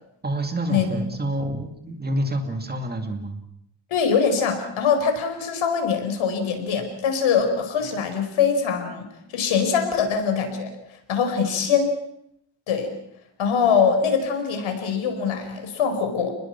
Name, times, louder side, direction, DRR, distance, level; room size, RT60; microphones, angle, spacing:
voice 1, 0.2-3.4, right 1 dB, 20° right, 5 dB, 2.4 m, -28 dB
voice 2, 3.9-9.1 9.3-11.9 12.7-12.9 13.4-16.3, left 6 dB, 85° left, 6 dB, 5.1 m, -23 dB
29.5 x 20.5 x 6.0 m, 0.75 s
cardioid pair, 155°, 47 cm